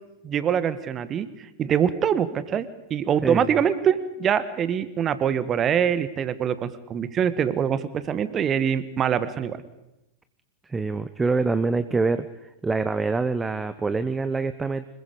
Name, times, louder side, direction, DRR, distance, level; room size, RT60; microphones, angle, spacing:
voice 1, 0.2-9.6, right 8 dB, 25° right, 14 dB, 1.4 m, -24 dB
voice 2, 10.7-12.3 12.6-14.9, right 3 dB, 10° right, 13 dB, 0.8 m, -25 dB
26.0 x 21.5 x 5.1 m, 0.90 s
figure-of-eight pair, 90°, 0 cm